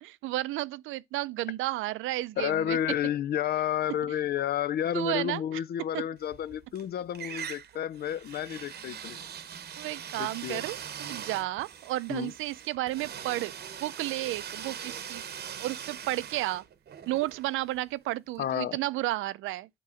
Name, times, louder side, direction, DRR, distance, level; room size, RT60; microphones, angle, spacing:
voice 1, 0.0-2.8 4.9-5.4 5.9-6.0 9.5-13.5 13.8-15.2 15.6-16.6 17.1-19.7, right 17 dB, 90° right, 0.5 m, -32 dB
voice 2, 2.4-9.2 10.2-10.6 12.1-12.3 18.4-18.8, left 10 dB, 55° left, 0.4 m, -31 dB
sound 1, 6.2-6.8 7.1-18.0, right 8 dB, 55° right, 0.9 m, -42 dB
8.3 x 3.0 x 4.8 m
cardioid pair, 90°, 20 cm